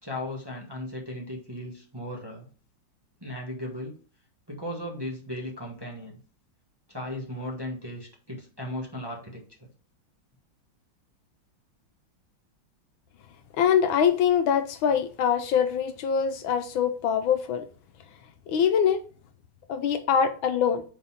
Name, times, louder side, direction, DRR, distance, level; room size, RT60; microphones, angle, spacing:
voice 1, 0.0-2.5 3.2-3.9 4.5-6.2 6.9-9.7, left 1 dB, 15° right, 1.2 m, -36 dB
voice 2, 13.6-17.6 18.5-19.0 19.7-20.8, left 8 dB, 80° left, 1.5 m, -23 dB
5.0 x 4.0 x 5.6 m
omnidirectional pair, 2.2 m